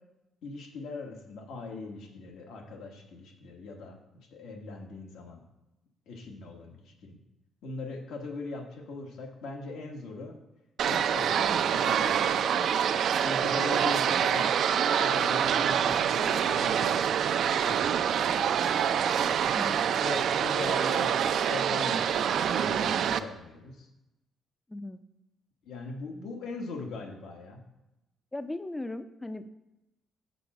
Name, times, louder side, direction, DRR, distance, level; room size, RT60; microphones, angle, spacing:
voice 1, 0.4-4.0 4.3-5.4 6.1-7.2 7.6-10.4 10.8-12.5 13.2-14.5 15.0-17.3 17.6-19.0 20.0-23.9 25.6-27.6, left 3 dB, 80° left, 2 dB, 1.2 m, -40 dB
sound 1, 10.8-23.2, right 8 dB, 65° right, 0.3 m, -26 dB
voice 2, 24.7-25.0 28.3-29.5, left 2 dB, 15° left, 11 dB, 0.4 m, -37 dB
6.9 x 4.4 x 5.9 m, 0.96 s
cardioid pair, 90°, 0 cm